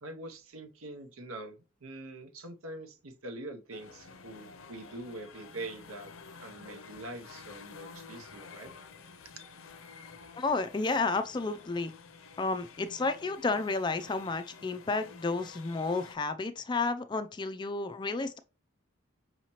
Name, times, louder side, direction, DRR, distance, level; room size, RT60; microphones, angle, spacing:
voice 1, 0.0-8.7, right 2 dB, 80° right, 0.8 m, -44 dB
sound 1, 3.7-16.2, left 5 dB, 70° left, 0.6 m, -51 dB
voice 2, 10.4-11.9 12.4-18.4, left 3 dB, 20° left, 0.3 m, -31 dB
5.6 x 2.9 x 2.9 m
head